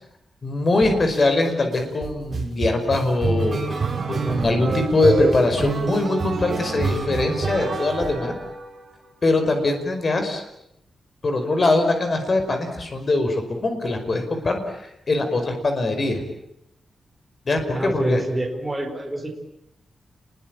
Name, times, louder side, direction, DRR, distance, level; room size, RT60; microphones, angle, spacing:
voice 1, 0.4-3.6 4.1-8.3 9.2-10.4 11.2-16.2 17.5-18.2, left 2 dB, 35° left, 6 dB, 5.2 m, -22 dB
sound 1, 0.8-1.2 1.7-8.9, right 4 dB, 35° right, 6.2 m, -27 dB
voice 2, 17.7-19.4, right 1 dB, 5° right, 2 dB, 4.3 m, -27 dB
29.5 x 22.0 x 9.0 m, 0.79 s
wide cardioid pair, 175°, 0 cm